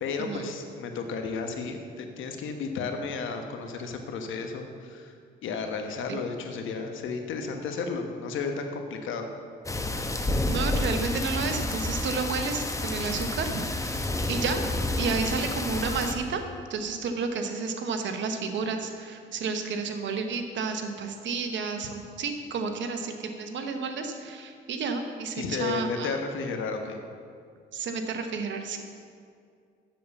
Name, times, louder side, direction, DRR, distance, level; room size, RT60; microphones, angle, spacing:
voice 1, 0.0-5.1 5.4-9.3 25.3-27.0, left 4 dB, 80° left, 5 dB, 1.2 m, -33 dB
sound 1, 9.7-16.1, left 2 dB, 15° left, 0.8 m, -29 dB
voice 2, 10.5-14.6 15.0-16.4 16.7-26.1 27.7-28.8, right 4 dB, 70° right, 6 dB, 1.1 m, -31 dB
7.4 x 7.0 x 6.9 m, 2.3 s
cardioid pair, 90°, 20 cm